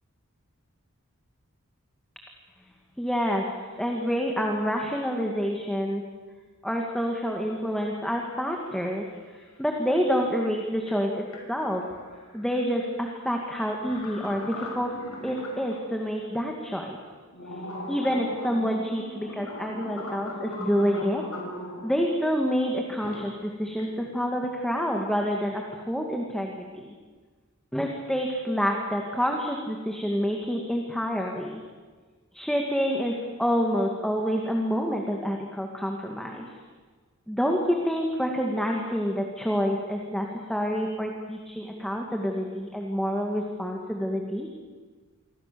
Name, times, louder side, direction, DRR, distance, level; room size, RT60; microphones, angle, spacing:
voice 1, 3.0-6.0 6.6-9.0 9.6-11.8 12.3-14.9 15.2-17.0 17.9-21.2 21.8-26.9 27.7-31.6 32.3-36.5 37.3-44.5, equal, ahead, 1 dB, 2.3 m, -28 dB
sound 1, 8.1-8.2 8.4-9.2 10.9-11.0 11.3-15.8 16.3-16.4 17.1-21.9 22.8-23.3 23.6-23.9, left 1 dB, 80° left, 6.5 m, -40 dB
28.0 x 24.0 x 7.1 m, 1.4 s
head